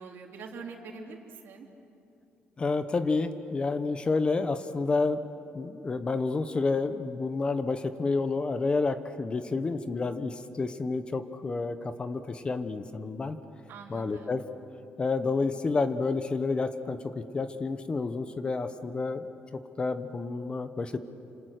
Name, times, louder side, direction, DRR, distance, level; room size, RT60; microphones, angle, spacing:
voice 1, 0.0-1.7 13.7-14.3, right 4 dB, 70° right, 1 dB, 3.3 m, -44 dB
voice 2, 2.6-5.2 5.5-13.4 13.9-14.4 15.0-19.3 19.8-21.0, left 3 dB, 25° left, 10 dB, 1.0 m, -29 dB
29.5 x 27.0 x 6.6 m, 2.8 s
cardioid pair, 140°, 4 cm